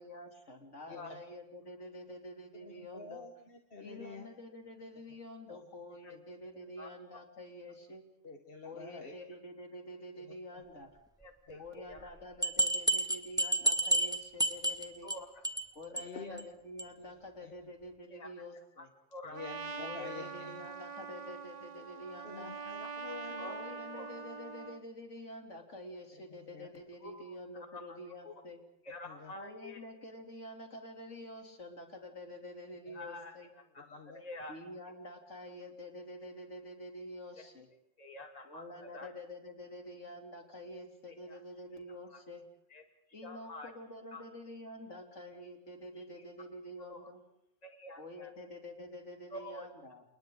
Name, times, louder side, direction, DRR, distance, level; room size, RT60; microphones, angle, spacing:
voice 1, 0.0-3.2 3.8-8.0 8.6-10.9 11.6-15.2 15.8-18.9 19.8-22.6 23.5-28.6 29.3-33.5 34.5-37.7 38.4-42.5 43.1-47.2 48.0-50.0, left 1 dB, 70° left, 3 dB, 3.6 m, -48 dB
voice 2, 0.9-1.2 2.6-4.3 5.5-5.6 6.1-6.2 8.2-9.1 11.5-11.6 16.0-16.5 17.4-17.5 19.3-20.6 22.2-23.5 26.5-26.7 29.1-29.3 33.9-34.2, left 4 dB, 50° left, 4 dB, 1.7 m, -48 dB
voice 3, 11.2-12.1 15.0-15.4 16.2-16.4 18.1-18.3 18.8-18.9 19.1-19.4 22.6-23.6 23.9-24.1 27.0-28.3 28.8-29.8 32.9-34.5 37.4-37.5 38.0-39.1 41.3-41.4 42.1-42.2 42.7-42.8 43.2-43.7 44.1-44.2 46.2-46.3 46.9-47.1 47.6-48.3 49.3-49.7, left 2 dB, 30° left, 5 dB, 2.2 m, -48 dB
sound 1, 12.0-12.1 12.4-15.2 15.4-15.7 16.0-16.1 16.4-16.5 16.8-16.9, right 1 dB, 5° right, 1.3 m, -30 dB
Trumpet, 19.3-24.8, right 4 dB, 35° right, 1.0 m, -44 dB
29.5 x 29.5 x 3.9 m, 0.74 s
omnidirectional pair, 1.3 m